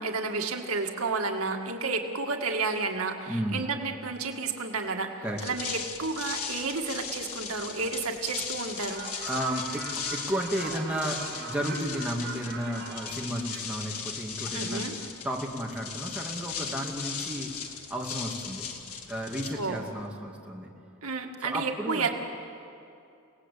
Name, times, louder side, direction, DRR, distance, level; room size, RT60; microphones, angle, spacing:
voice 1, 0.0-5.1 5.4-9.0 14.5-14.9 19.6-19.8 21.0-22.1, right 4 dB, 80° right, 3 dB, 2.1 m, -31 dB
voice 2, 3.3-3.7 5.2-5.4 9.2-17.5 17.9-18.6 19.1-20.7 21.4-22.1, equal, 5° right, -2 dB, 2.4 m, -33 dB
sound 1, 5.2-20.1, left 6 dB, 90° left, 2.1 m, -38 dB
sound 2, 8.8-13.9, right 4 dB, 45° right, 4.8 m, -42 dB
29.0 x 18.5 x 8.5 m, 2.6 s
head